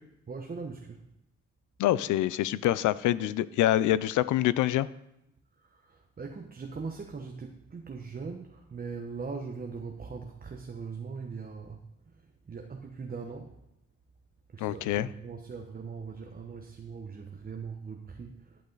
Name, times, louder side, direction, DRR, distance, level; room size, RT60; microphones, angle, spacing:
voice 1, 0.3-1.0 5.7-11.8 12.5-13.5 14.5-18.6, right 5 dB, 30° right, 3 dB, 1.0 m, -40 dB
voice 2, 1.8-4.9 14.6-15.1, left 13 dB, 80° left, 18 dB, 0.5 m, -26 dB
11.0 x 8.3 x 4.0 m, 0.87 s
cardioid pair, 90°, 30 cm